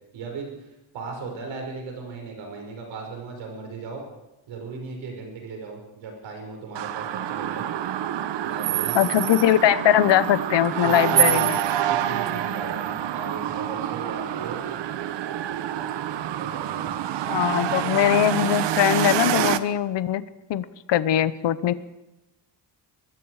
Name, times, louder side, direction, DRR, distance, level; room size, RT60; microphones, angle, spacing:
voice 1, 0.1-4.1 4.5-7.7 8.4-9.0 10.8-14.6 16.4-16.8, right 4 dB, 90° right, 2 dB, 6.0 m, -37 dB
sound 1, 6.8-19.6, right 11 dB, 70° right, 1.1 m, -26 dB
voice 2, 8.9-11.6 17.3-20.2 20.5-21.7, left 11 dB, 70° left, 14 dB, 1.0 m, -21 dB
24.5 x 21.5 x 5.0 m, 0.94 s
cardioid pair, 175°, 44 cm